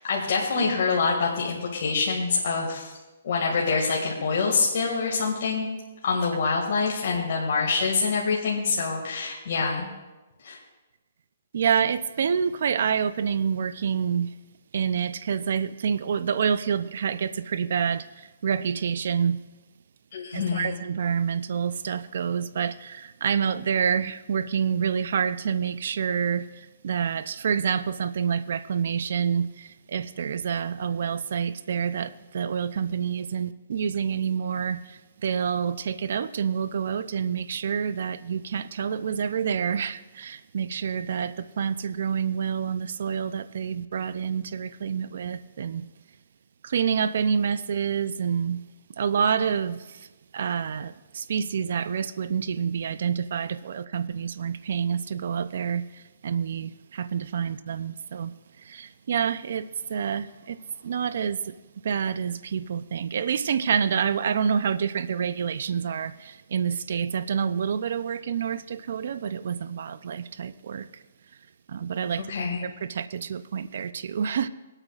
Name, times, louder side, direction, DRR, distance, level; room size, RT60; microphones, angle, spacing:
voice 1, 0.0-2.9 3.2-5.7 6.0-9.9 10.4-10.6 20.1-20.8 72.3-72.6, left 4 dB, 60° left, 2.0 m, -25 dB
voice 2, 11.5-14.3 14.7-19.4 20.3-45.9 46.6-48.6 49.0-50.1 50.3-61.5 61.8-70.9 71.7-72.2 72.6-74.5, right 7 dB, 65° right, 0.4 m, -28 dB
23.0 x 8.8 x 2.4 m
hypercardioid pair, 155°, 0 cm